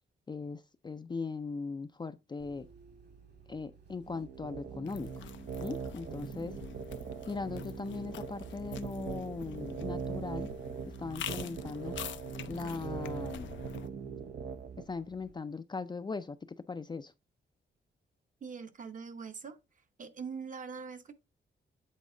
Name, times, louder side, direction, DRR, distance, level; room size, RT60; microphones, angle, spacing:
voice 1, 0.3-2.7 3.5-5.3 5.6-6.5 7.3-10.5 11.0-12.0 12.5-13.5 14.9-17.1, left 4 dB, 25° left, 0.4 m, -39 dB
Bus, 2.4-15.3, right 5 dB, 60° right, 2.3 m, -58 dB
sound 1, 4.1-14.8, right 6 dB, 80° right, 0.7 m, -41 dB
sound 2, 4.9-13.9, left 10 dB, 85° left, 0.5 m, -47 dB
voice 2, 18.4-19.6 20.0-21.1, right 5 dB, 45° right, 0.9 m, -42 dB
8.4 x 4.1 x 3.7 m
cardioid pair, 115°, 19 cm